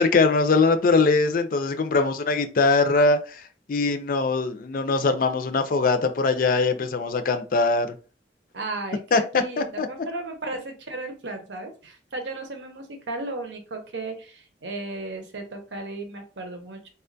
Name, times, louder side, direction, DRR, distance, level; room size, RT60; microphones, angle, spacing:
voice 1, 0.0-3.4 3.7-7.9 9.1-9.9, left 3 dB, 50° left, 9 dB, 0.4 m, -21 dB
voice 2, 8.5-16.8, right 2 dB, 80° right, 5 dB, 0.8 m, -35 dB
4.1 x 2.2 x 2.6 m, 0.36 s
head